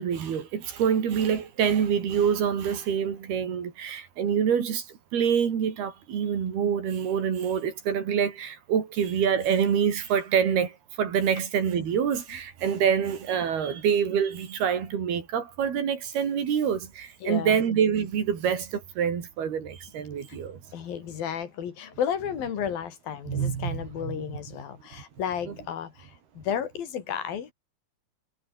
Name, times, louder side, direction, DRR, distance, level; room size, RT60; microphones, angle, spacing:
voice 1, 0.0-4.8 5.1-20.6 23.3-24.2 25.5-25.6, right 8 dB, 75° right, 5.2 m, -26 dB
voice 2, 17.2-17.6 20.3-20.4 20.7-27.5, left 8 dB, 65° left, 4.1 m, -33 dB
omnidirectional pair, 4.5 m